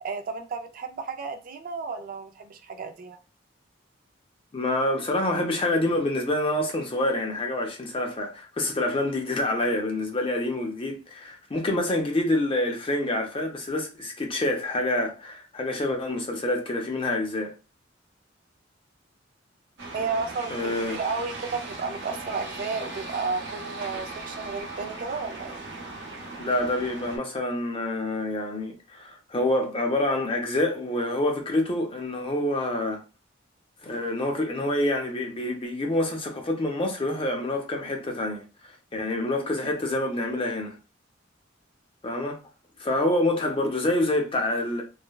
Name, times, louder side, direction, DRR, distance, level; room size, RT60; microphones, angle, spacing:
voice 1, 0.0-3.2 19.9-25.6, right 4 dB, 45° right, 0.3 m, -32 dB
voice 2, 4.5-17.5 20.5-21.0 26.4-33.0 33.8-40.7 42.0-42.4 42.8-44.8, left 1 dB, 30° left, 0.5 m, -27 dB
sound 1, 19.8-27.2, right 2 dB, 60° right, 0.8 m, -38 dB
3.2 x 2.1 x 2.2 m
head